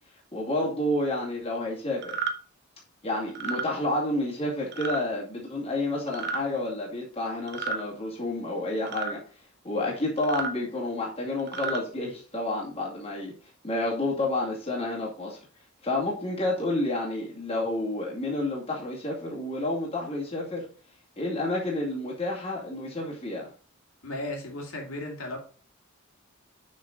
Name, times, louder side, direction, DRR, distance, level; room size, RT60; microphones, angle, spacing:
voice 1, 0.3-2.2 3.0-9.2 9.6-13.3 13.6-15.4 15.8-20.6 21.2-23.5, left 2 dB, 30° left, -4 dB, 2.3 m, -30 dB
sound 1, 2.0-2.3 3.3-3.6 4.7-5.0 6.1-6.4 7.5-7.8 8.9-9.1 10.2-10.5 11.4-11.8, right 5 dB, 55° right, 1.0 m, -32 dB
voice 2, 24.0-25.4, left 1 dB, 70° left, 0 dB, 2.6 m, -35 dB
6.4 x 6.4 x 3.9 m, 0.39 s
head